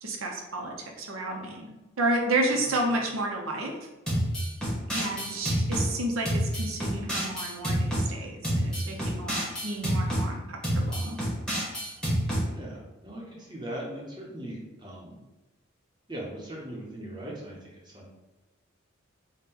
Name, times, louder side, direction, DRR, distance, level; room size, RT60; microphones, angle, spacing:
voice 1, 0.0-1.6 2.0-3.7 4.9-11.2, right 2 dB, 85° right, 1 dB, 0.6 m, -31 dB
sound 1, 4.1-5.9 6.2-8.1 8.4-10.2 10.6-12.4, equal, 5° left, 1.0 m, -28 dB
voice 2, 12.5-15.2 16.1-18.1, right 1 dB, 20° right, -3 dB, 0.6 m, -40 dB
3.6 x 2.1 x 4.2 m, 1.1 s
head